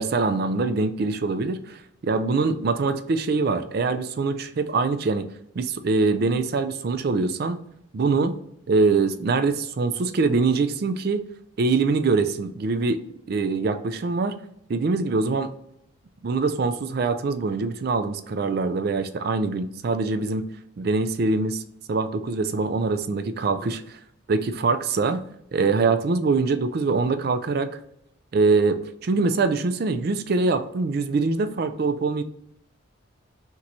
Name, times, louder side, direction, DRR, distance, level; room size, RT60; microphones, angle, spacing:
voice 1, 0.0-5.3 5.6-7.6 7.9-8.4 8.7-11.2 11.6-13.0 13.3-14.3 14.7-15.5 16.2-20.5 20.8-21.6 21.9-24.0 24.3-25.2 25.5-27.7 28.3-32.2, right 4 dB, 50° right, 11 dB, 0.4 m, -23 dB
5.8 x 3.0 x 2.7 m, 0.78 s
head